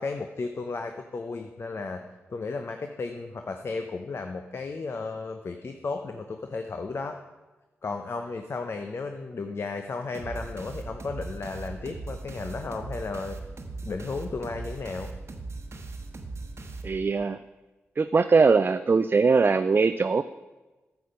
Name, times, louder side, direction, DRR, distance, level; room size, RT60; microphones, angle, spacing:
voice 1, 0.0-7.2 7.8-13.4 13.8-15.1, left 3 dB, 55° left, 6 dB, 0.7 m, -34 dB
sound 1, 10.1-17.3, right 3 dB, 60° right, 1.0 m, -39 dB
voice 2, 16.8-17.4 18.0-20.2, right 4 dB, 40° right, 11 dB, 0.3 m, -21 dB
9.4 x 7.0 x 5.1 m, 1.2 s
cardioid pair, 50°, 5 cm